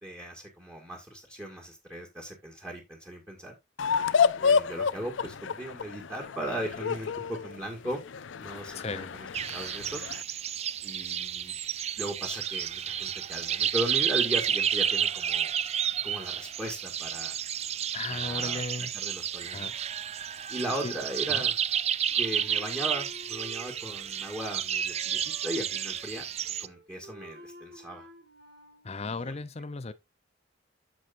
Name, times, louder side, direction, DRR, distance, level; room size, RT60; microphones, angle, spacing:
voice 1, 0.0-3.6 4.4-8.0 8.4-9.3 9.5-10.0 10.8-11.6 12.0-15.5 16.0-17.4 18.1-18.6 18.9-19.7 20.5-21.6 22.2-26.3 26.6-28.1 29.0-29.2, right 1 dB, 15° right, 1.8 m, -37 dB
sound 1, 3.8-10.2, left 6 dB, 80° left, 0.5 m, -29 dB
voice 2, 8.7-9.1 17.9-18.9 19.5-19.8 20.3-20.4 20.8-20.9 21.3-21.4 28.8-29.9, left 3 dB, 35° left, 0.6 m, -36 dB
sound 2, 9.3-26.7, right 9 dB, 35° right, 0.4 m, -31 dB
Wind instrument woodwind instrument, 22.1-24.5 24.8-28.9, equal, 60° right, 2.2 m, -51 dB
14.0 x 4.9 x 2.5 m
head